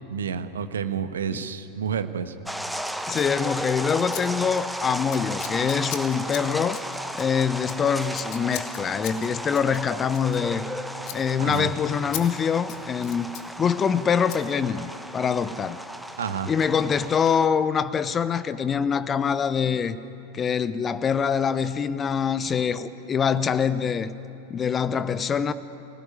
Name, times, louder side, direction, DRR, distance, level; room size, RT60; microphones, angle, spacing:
voice 1, 0.1-2.3 11.4-11.7 16.2-16.5, right 7 dB, 65° right, 1.3 m, -29 dB
sound 1, 2.4-17.5, equal, ahead, 1.2 m, -35 dB
Scissors, 3.1-3.3 4.1-4.2 4.5-4.7 5.1-10.8 11.0-11.2 11.5-11.6 12.1-12.2 12.6-13.5 14.3-14.4, left 11 dB, 40° left, 2.1 m, -39 dB
voice 2, 3.1-6.8 7.1-10.7 11.1-13.3 13.6-15.8 16.5-20.0 20.3-24.1 24.5-25.5, left 7 dB, 20° left, 0.7 m, -24 dB
27.5 x 18.0 x 9.7 m
figure-of-eight pair, 90°, 0 cm